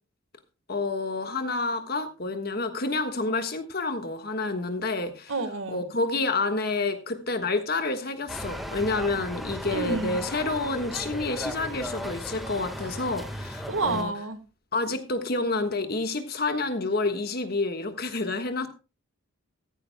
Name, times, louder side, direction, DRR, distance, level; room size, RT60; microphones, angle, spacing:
voice 1, 0.7-5.3 5.7-14.1 14.7-18.7, left 3 dB, 50° left, 1.4 m, -29 dB
voice 2, 5.3-5.8 9.7-10.2 13.7-14.4, right 3 dB, 80° right, 1.4 m, -29 dB
sound 1, 8.3-14.0, equal, ahead, 1.5 m, -36 dB
14.5 x 14.5 x 2.2 m
head